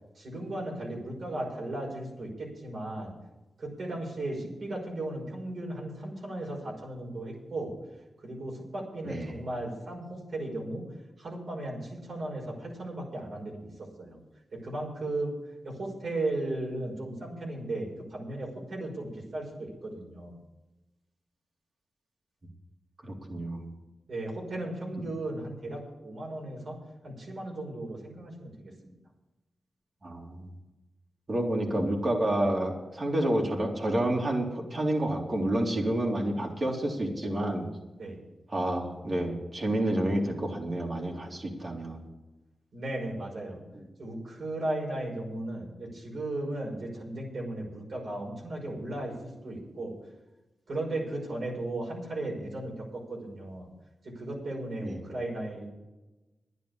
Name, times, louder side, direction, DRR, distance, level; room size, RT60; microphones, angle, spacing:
voice 1, 0.2-3.1 3.6-7.7 8.2-10.9 11.2-14.2 14.5-15.4 15.6-20.4 24.1-26.8 27.0-28.9 38.0-38.2 42.7-43.6 44.0-50.0 50.7-53.7 54.0-55.7, right 1 dB, 70° right, -1 dB, 5.5 m, -36 dB
voice 2, 9.0-9.4 23.0-23.7 30.0-30.5 31.3-37.7 38.5-42.1 43.7-43.8 54.8-55.0, right 1 dB, 50° right, 0 dB, 3.8 m, -29 dB
11.0 x 9.5 x 8.5 m, 1.1 s
cardioid pair, 55°, 0 cm